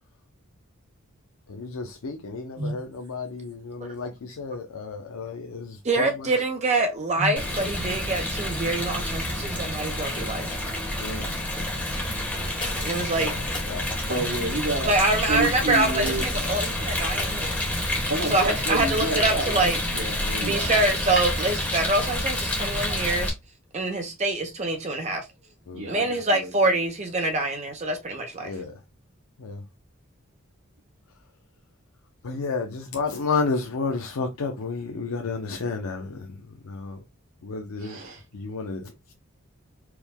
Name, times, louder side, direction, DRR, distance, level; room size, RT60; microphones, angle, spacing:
voice 1, 1.5-6.3 11.0-11.3 13.2-13.9 20.2-20.6 25.7-25.9 28.4-28.8 29.4-29.6 32.2-37.0 37.4-38.0 38.3-38.9, left 4 dB, 85° left, 0.6 m, -32 dB
voice 2, 5.8-10.5 12.8-13.3 14.9-17.6 18.3-19.8 20.4-23.3 23.7-25.2 25.9-28.5, right 2 dB, 35° right, 0.6 m, -25 dB
Rain, 7.4-23.3, left 1 dB, 10° left, 1.1 m, -28 dB
sound 1, 12.6-13.2 13.5-13.7 16.0-16.7 17.2-17.4, left 3 dB, 25° left, 1.0 m, -37 dB
voice 3, 14.1-14.9 15.3-16.3 18.1-20.2 20.4-20.9 25.7-26.5 37.8-38.2, right 2 dB, 70° right, 1.4 m, -30 dB
4.5 x 2.1 x 3.5 m
head